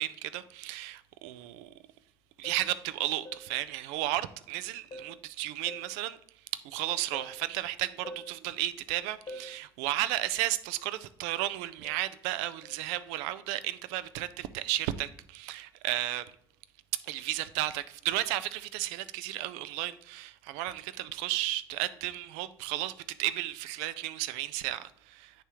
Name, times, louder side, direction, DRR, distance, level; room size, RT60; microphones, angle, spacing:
voice 1, 0.0-1.7 2.4-6.2 6.5-16.3 17.0-22.9 23.2-25.4, right 15 dB, 70° right, 0.5 m, -33 dB
sound 1, 2.4-2.7 3.2-3.6 4.9-5.2 5.7-6.0 7.1-7.4 8.0-8.4 9.3-9.6 11.8-12.1 12.6-12.8, left 1 dB, 40° left, 1.3 m, -45 dB
10.0 x 3.4 x 2.9 m
hypercardioid pair, 65°, 13 cm